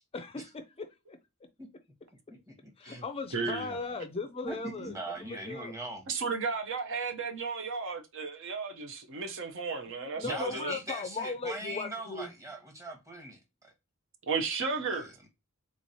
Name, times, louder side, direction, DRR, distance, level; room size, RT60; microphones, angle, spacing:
voice 1, 0.1-1.5 2.8-5.7 9.9-12.3, left 3 dB, 25° left, 0.4 m, -38 dB
voice 2, 2.5-3.0 3.3-3.5 4.4-6.1 10.2-13.7 14.9-15.3, right 1 dB, 15° right, 1.0 m, -41 dB
voice 3, 3.3-3.7 6.1-10.7 14.2-15.1, right 4 dB, 60° right, 0.6 m, -34 dB
3.6 x 3.1 x 2.6 m
head